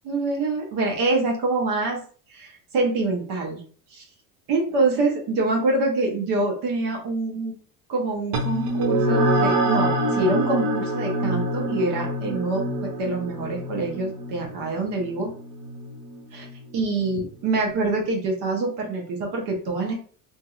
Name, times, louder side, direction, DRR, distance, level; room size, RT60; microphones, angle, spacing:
voice 1, 0.0-2.0 2.3-3.6 3.9-4.0 4.5-7.6 7.9-15.3 16.3-16.5 16.7-19.9, right 3 dB, 65° right, 0 dB, 1.1 m, -25 dB
sound 1, 8.3-17.2, right 1 dB, 45° right, 0.9 m, -26 dB
2.7 x 2.6 x 2.4 m, 0.44 s
supercardioid pair, 80°, 43 cm